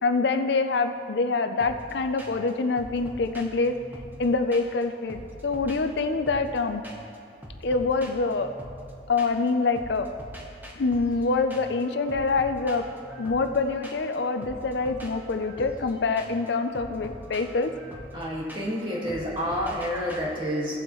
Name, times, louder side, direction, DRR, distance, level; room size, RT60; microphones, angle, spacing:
voice 1, 0.0-3.7 4.2-6.8 7.6-8.5 9.1-10.1 10.8-12.8 13.2-17.7, left 3 dB, 70° left, 8 dB, 0.5 m, -25 dB
sound 1, 1.6-1.9 2.2-2.5 2.8-4.8 5.1-6.6 6.8-7.2 7.4-9.5 9.7-20.2, equal, 10° right, 1.0 m, -43 dB
voice 2, 18.1-20.8, equal, 25° right, -5 dB, 1.8 m, -29 dB
16.0 x 7.7 x 3.1 m, 2.4 s
head